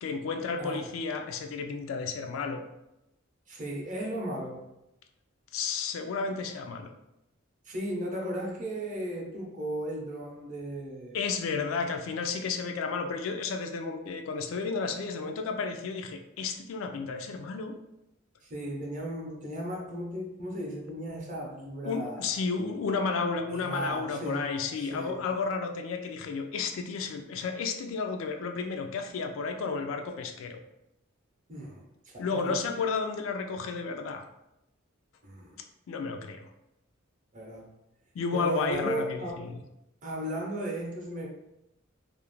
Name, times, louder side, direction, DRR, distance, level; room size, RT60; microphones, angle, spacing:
voice 1, 0.0-2.6 5.5-6.9 11.1-17.7 21.8-30.6 32.2-34.2 35.9-36.5 38.1-39.6, left 4 dB, 75° left, 5 dB, 0.3 m, -32 dB
voice 2, 0.6-0.9 3.5-4.7 7.7-11.2 18.4-22.3 23.5-24.4 24.7-25.2 31.5-32.7 35.2-35.6 37.3-37.7 38.3-39.5 40.0-41.3, right 1 dB, 40° right, -2 dB, 0.6 m, -36 dB
2.4 x 2.0 x 3.0 m, 0.88 s
head